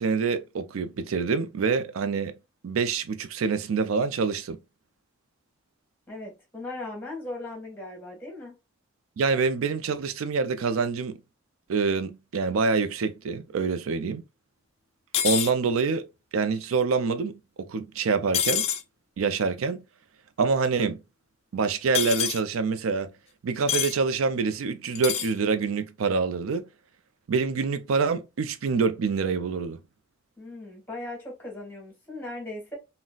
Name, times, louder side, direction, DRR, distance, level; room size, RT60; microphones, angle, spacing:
voice 1, 0.0-2.3 2.6-4.6 9.2-11.2 11.7-14.2 15.2-16.0 16.3-18.7 19.2-19.8 20.4-21.0 21.5-23.1 23.4-26.6 27.3-29.8, right 5 dB, 90° right, 0.4 m, -26 dB
voice 2, 6.1-8.5 30.4-32.8, left 2 dB, 10° left, 1.5 m, -38 dB
sound 1, 15.1-15.5 18.3-18.8 21.9-22.4 23.7-23.9 24.9-25.3, left 9 dB, 30° left, 0.3 m, -26 dB
3.8 x 2.1 x 2.3 m
head